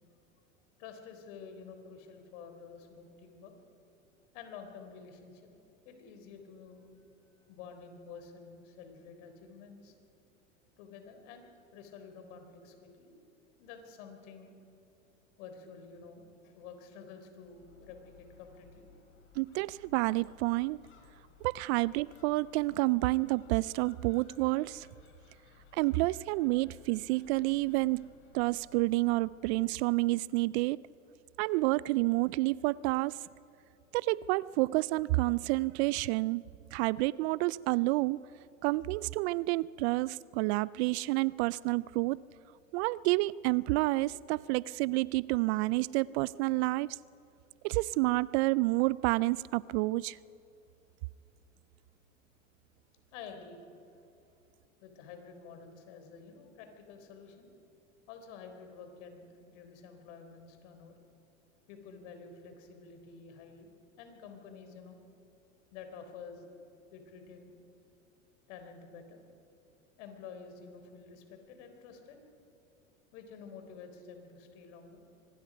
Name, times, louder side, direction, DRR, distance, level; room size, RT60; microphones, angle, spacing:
voice 1, 0.8-3.5 4.3-5.5 5.8-7.0 7.5-9.9 10.8-13.1 13.6-14.5 15.4-19.2 29.4-29.5 53.1-53.6 54.8-57.5 58.1-60.9 61.7-63.7 64.0-65.0 65.7-66.5 66.9-67.5 68.5-69.2 70.0-72.2 73.1-75.0, left 5 dB, 65° left, 6 dB, 3.9 m, -50 dB
Gull seagull, 17.5-29.9, left 7 dB, 30° left, 3.1 m, -60 dB
voice 2, 19.4-20.8 21.4-24.9 25.7-28.0 28.3-30.8 31.4-33.2 33.9-36.4 36.7-38.2 38.6-42.2 42.7-47.0 47.6-50.2, right 21 dB, 55° right, 22 dB, 0.4 m, -29 dB
25.0 x 20.0 x 5.2 m, 2.8 s
hypercardioid pair, 95°, 40 cm